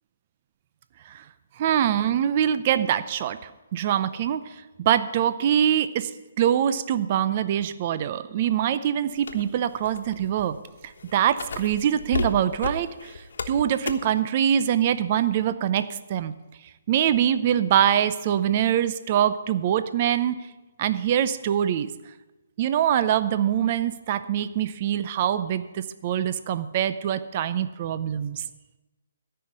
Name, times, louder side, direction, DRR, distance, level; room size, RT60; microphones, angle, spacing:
voice 1, 1.6-6.1 6.4-10.6 10.8-16.3 16.9-20.4 20.8-21.9 22.6-28.4, right 10 dB, 35° right, 13 dB, 0.6 m, -24 dB
sound 1, 9.2-14.2, left 4 dB, 70° left, 1.2 m, -33 dB
13.5 x 5.7 x 9.2 m, 1.1 s
hypercardioid pair, 160°, 0 cm